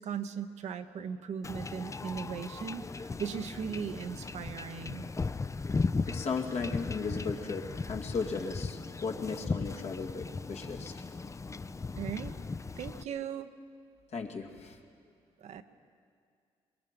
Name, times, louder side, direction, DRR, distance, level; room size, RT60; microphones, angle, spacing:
voice 1, 0.0-5.1 12.0-12.3 12.8-13.5 15.4-15.6, right 7 dB, 70° right, 8 dB, 1.0 m, -38 dB
Wind / Ocean / Boat Water vehicle, 1.4-13.0, left 4 dB, 25° left, 0.6 m, -37 dB
voice 2, 6.1-10.9 14.1-14.8, left 4 dB, 65° left, 1 dB, 2.3 m, -36 dB
23.0 x 21.5 x 5.3 m, 2.2 s
supercardioid pair, 55°, 12 cm